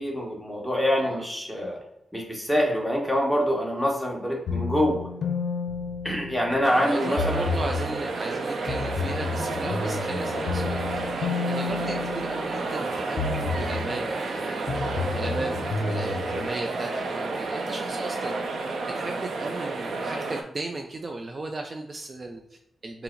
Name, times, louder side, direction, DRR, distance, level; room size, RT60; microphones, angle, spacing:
voice 1, 0.0-1.8 2.1-5.1 6.0-7.4, equal, ahead, -1 dB, 1.1 m, -25 dB
sound 1, 4.5-6.7 7.2-8.0 8.7-12.8 13.2-14.0 14.7-16.5, left 4 dB, 85° left, 0.5 m, -31 dB
sound 2, 6.6-20.4, right 3 dB, 75° right, 0.6 m, -31 dB
voice 2, 6.8-11.0 11.5-14.6 15.1-18.4 19.0-23.0, right 2 dB, 35° right, 3 dB, 0.4 m, -36 dB
5.6 x 2.0 x 3.8 m, 0.84 s
wide cardioid pair, 105°, 0 cm